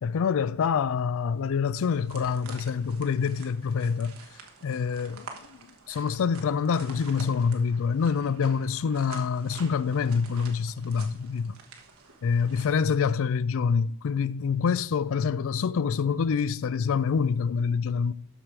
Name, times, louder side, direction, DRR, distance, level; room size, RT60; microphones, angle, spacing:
voice 1, 0.0-4.2 4.6-5.6 5.9-11.6 12.2-18.1, left 6 dB, 65° left, 0.4 m, -26 dB
sound 1, 1.7-13.2, right 5 dB, 80° right, 1.3 m, -48 dB
12.5 x 4.9 x 4.6 m
head